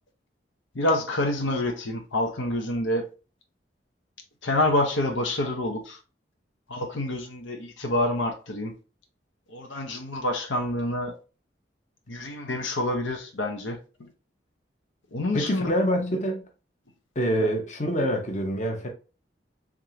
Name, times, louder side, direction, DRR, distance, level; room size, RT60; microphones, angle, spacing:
voice 1, 0.7-3.1 4.4-6.0 6.7-8.7 9.5-11.2 12.1-14.1 15.1-15.7 17.4-17.5, left 1 dB, 85° left, 0.9 m, -27 dB
voice 2, 15.3-16.5 17.1-18.9, equal, 40° left, 0.9 m, -26 dB
3.6 x 3.6 x 2.8 m
head